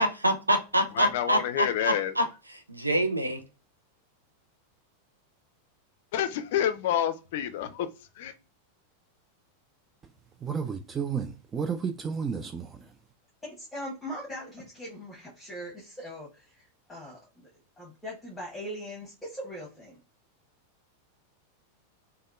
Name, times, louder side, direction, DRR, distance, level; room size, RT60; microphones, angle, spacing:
voice 1, 0.0-3.4, equal, 85° right, 0.4 m, -26 dB
voice 2, 1.0-2.1 6.1-7.9 8.2-8.3, left 10 dB, 50° left, 0.4 m, -28 dB
voice 3, 10.4-12.7, right 6 dB, 20° right, 0.3 m, -32 dB
voice 4, 13.4-17.5 17.8-20.0, equal, 10° left, 1.1 m, -40 dB
3.4 x 2.2 x 2.3 m
figure-of-eight pair, 90°, 0 cm